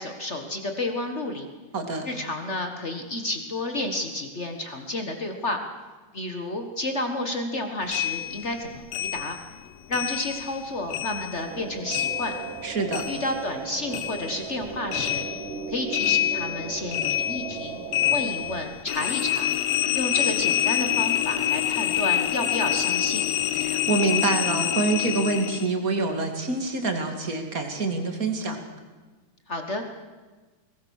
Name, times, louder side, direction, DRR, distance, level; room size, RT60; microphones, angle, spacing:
voice 1, 0.0-1.5 2.0-5.6 6.1-9.4 9.9-12.3 13.1-15.2 15.7-17.8 18.1-19.6 19.9-23.3 29.5-29.8, left 2 dB, 55° left, 5 dB, 0.7 m, -31 dB
voice 2, 1.7-2.1 12.6-13.0 23.6-28.6, right 3 dB, 30° right, 5 dB, 2.2 m, -26 dB
sound 1, 7.9-10.6 10.9-13.6 13.9-25.7, left 11 dB, 85° left, 2.7 m, -27 dB
sound 2, 11.5-18.6, right 6 dB, 70° right, 2.9 m, -37 dB
22.5 x 20.0 x 6.5 m, 1.3 s
omnidirectional pair, 4.0 m